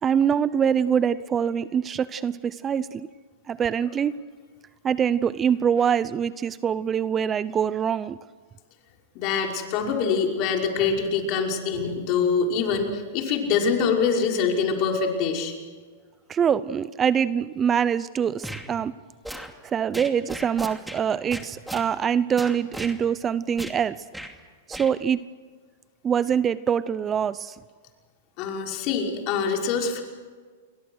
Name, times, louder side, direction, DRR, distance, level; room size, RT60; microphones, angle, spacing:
voice 1, 0.0-3.1 3.5-4.2 4.8-8.2 16.3-18.9 19.6-24.0 24.7-25.2 26.0-27.6, right 8 dB, 25° right, 17 dB, 0.7 m, -24 dB
voice 2, 9.2-15.5 28.4-30.0, left 5 dB, 45° left, 1 dB, 5.5 m, -24 dB
sound 1, 18.4-18.7 19.2-19.5 19.9-21.0 21.3-21.9 22.4-23.0 23.6-23.8 24.1-24.3 24.7-24.9, equal, ahead, 2.5 m, -36 dB
29.5 x 23.0 x 6.5 m, 1.5 s
hypercardioid pair, 115°, 0 cm